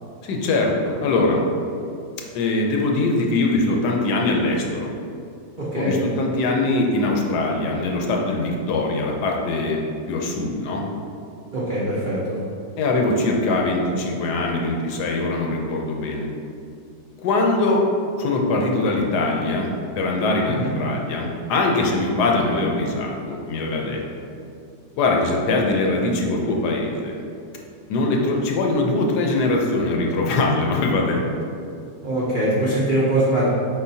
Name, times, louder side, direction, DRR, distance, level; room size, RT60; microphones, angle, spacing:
voice 1, 0.2-1.4 2.3-4.9 5.8-9.8 10.1-10.8 12.8-16.3 17.2-17.8 18.2-24.0 25.0-27.2 27.9-31.2, left 2 dB, 75° left, 0 dB, 1.1 m, -22 dB
voice 2, 5.6-5.9 11.5-12.2 20.5-20.7 32.0-33.5, right 1 dB, 70° right, -8 dB, 0.4 m, -22 dB
4.5 x 3.7 x 2.7 m, 2.4 s
omnidirectional pair, 1.8 m